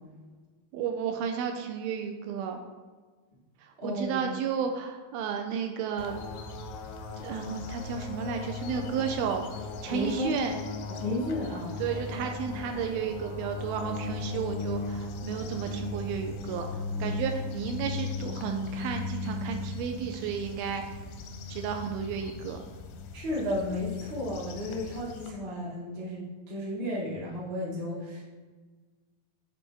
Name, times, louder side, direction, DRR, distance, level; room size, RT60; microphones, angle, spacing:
voice 1, 0.7-2.6 3.6-6.2 7.2-9.4 9.8-10.5 11.8-20.8 21.5-22.6, right 7 dB, 80° right, 4 dB, 2.2 m, -33 dB
voice 2, 3.8-4.2 9.9-10.4 10.9-11.8 23.1-28.2, left 1 dB, 50° right, -7 dB, 0.4 m, -33 dB
sound 1, 6.0-25.3, left 3 dB, 80° left, 2.0 m, -37 dB
9.8 x 3.4 x 4.4 m, 1.4 s
omnidirectional pair, 4.5 m